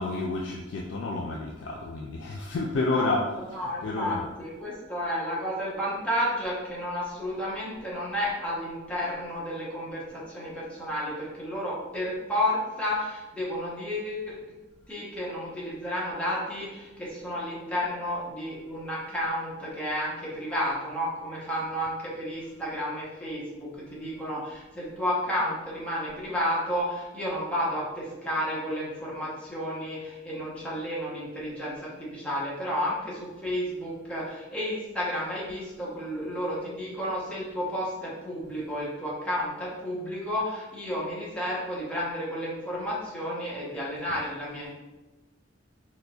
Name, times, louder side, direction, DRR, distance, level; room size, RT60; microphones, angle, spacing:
voice 1, 0.0-3.2 3.5-4.2, left 3 dB, 75° left, -1 dB, 0.3 m, -30 dB
voice 2, 2.9-14.3 14.9-44.7, equal, 5° left, -7 dB, 0.8 m, -32 dB
3.8 x 2.7 x 2.3 m, 1.1 s
head